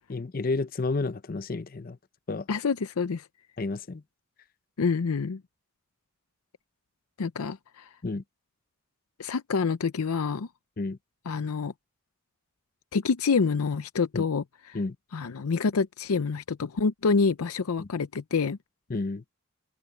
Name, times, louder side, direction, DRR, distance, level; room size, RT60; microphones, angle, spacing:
voice 1, 0.1-2.0 2.3-2.5 3.6-4.0 8.0-8.2 10.8-11.0 14.1-14.2 14.7-15.0 17.8-17.9 18.9-19.2, left 3 dB, 40° left, 0.6 m, -31 dB
voice 2, 2.5-3.2 4.8-5.4 7.2-7.9 9.2-10.5 11.3-11.7 12.9-14.8 15.1-18.6, left 5 dB, 90° left, 0.6 m, -27 dB
head